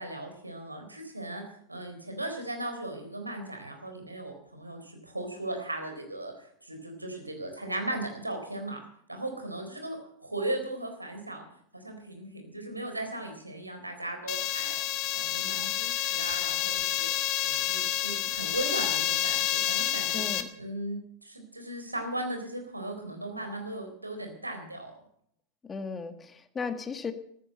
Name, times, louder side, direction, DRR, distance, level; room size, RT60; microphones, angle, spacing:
voice 1, 0.0-1.4 1.7-8.8 9.1-11.4 11.7-14.8 15.1-17.1 17.4-20.2 20.6-24.9, right 1 dB, 85° right, 4 dB, 3.9 m, -37 dB
sound 1, 14.3-20.4, left 12 dB, 40° left, 1.5 m, -29 dB
voice 2, 20.1-20.5 25.6-27.1, left 5 dB, 15° left, 11 dB, 1.4 m, -35 dB
15.0 x 11.0 x 7.7 m, 0.69 s
figure-of-eight pair, 90°, 0 cm